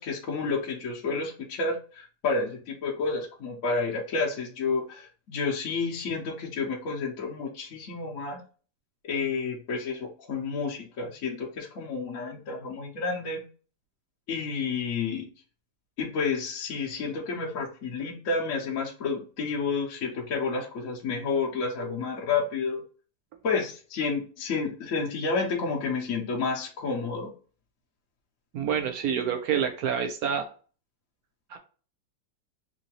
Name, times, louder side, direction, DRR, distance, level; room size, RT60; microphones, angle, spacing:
voice 1, 0.0-8.4 9.0-13.4 14.3-15.3 16.0-22.8 23.4-27.3, left 4 dB, 55° left, -3 dB, 1.0 m, -30 dB
voice 2, 28.5-30.5 31.5-31.6, right 8 dB, 75° right, 5 dB, 0.8 m, -27 dB
3.8 x 2.6 x 2.8 m, 0.38 s
omnidirectional pair, 2.0 m